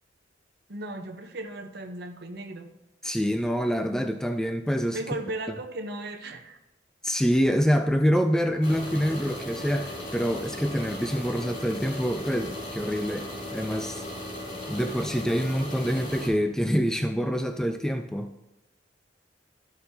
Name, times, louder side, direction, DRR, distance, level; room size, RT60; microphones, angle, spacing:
voice 1, 0.7-2.7 4.9-6.6, right 2 dB, 60° right, 3 dB, 0.9 m, -36 dB
voice 2, 3.0-5.0 7.0-13.3 13.5-14.0 14.7-18.3, equal, 5° left, 6 dB, 0.4 m, -26 dB
sound 1, 8.6-16.3, left 1 dB, 85° left, 3.2 m, -37 dB
13.0 x 6.6 x 2.8 m, 0.98 s
head